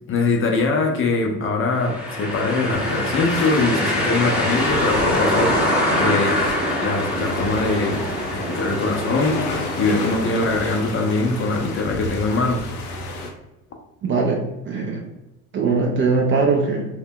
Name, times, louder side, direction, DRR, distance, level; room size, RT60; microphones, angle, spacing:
voice 1, 0.1-6.4 6.8-8.1 8.3-12.6, left 3 dB, 30° left, 2 dB, 0.5 m, -22 dB
sound 1, 1.8-11.6, left 1 dB, 5° right, 0.7 m, -24 dB
sound 2, 2.7-13.3, left 2 dB, 85° left, 0.6 m, -32 dB
voice 2, 14.0-15.0 15.5-16.9, right 4 dB, 30° right, 0 dB, 0.4 m, -21 dB
2.2 x 2.0 x 3.6 m, 0.99 s
hypercardioid pair, 80°, 44 cm